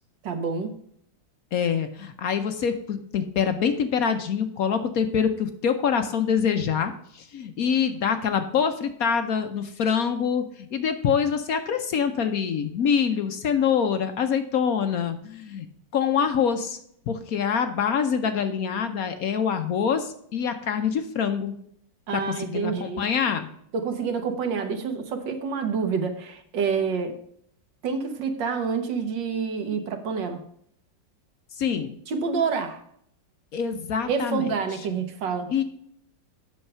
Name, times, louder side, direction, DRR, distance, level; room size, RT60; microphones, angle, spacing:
voice 1, 0.2-0.7 22.1-23.0 23.7-27.1 27.8-30.4 32.1-32.8 34.1-35.5, right 5 dB, 80° right, 7 dB, 1.9 m, -27 dB
voice 2, 1.5-15.7 15.9-16.8 17.1-21.5 22.1-23.5 31.6-31.9 33.5-34.5 35.5-35.6, left 7 dB, 60° left, 8 dB, 1.0 m, -25 dB
7.9 x 6.5 x 5.4 m, 0.68 s
omnidirectional pair, 2.0 m